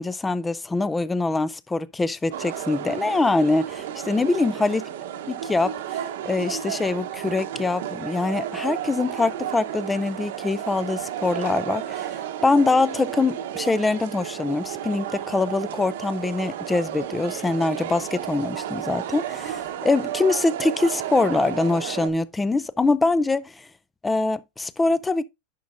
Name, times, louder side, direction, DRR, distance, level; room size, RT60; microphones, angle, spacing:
voice 1, 0.0-4.8 5.3-12.1 12.4-23.4 24.0-25.2, left 3 dB, 5° left, 0.3 m, -24 dB
sound 1, 2.3-22.1, right 10 dB, 65° right, 0.9 m, -32 dB
10.5 x 5.9 x 2.5 m
supercardioid pair, 175°, 0 cm